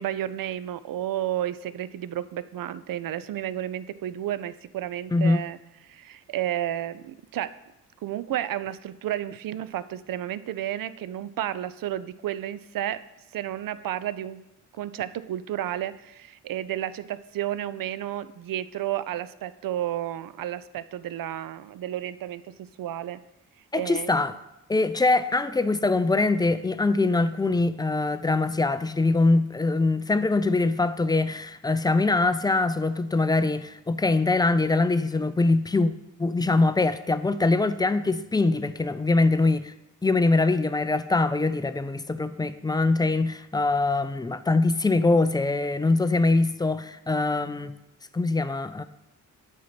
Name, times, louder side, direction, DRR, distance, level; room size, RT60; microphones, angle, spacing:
voice 1, 0.0-5.6 5.9-7.6 8.0-13.0 13.3-14.4 14.7-23.2 23.7-24.2, right 12 dB, 55° right, 0.5 m, -32 dB
voice 2, 23.7-24.4 24.7-35.9 36.2-39.7 40.0-47.8 48.1-48.8, left 3 dB, 10° left, 0.3 m, -23 dB
8.3 x 2.8 x 5.9 m
supercardioid pair, 45°, 41 cm